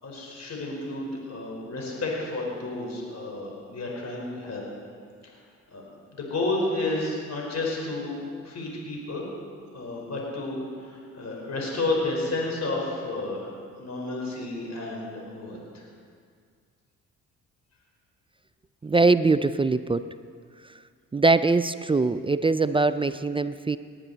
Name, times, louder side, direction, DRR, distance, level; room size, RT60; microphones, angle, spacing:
voice 1, 0.0-4.6 5.7-8.1 8.4-9.3 9.7-13.5 13.8-15.9, left 2 dB, 45° left, -2 dB, 4.3 m, -31 dB
voice 2, 18.8-20.0 21.1-23.8, right 3 dB, 15° right, 13 dB, 0.4 m, -22 dB
19.0 x 9.8 x 4.0 m, 2.1 s
hypercardioid pair, 50°, 36 cm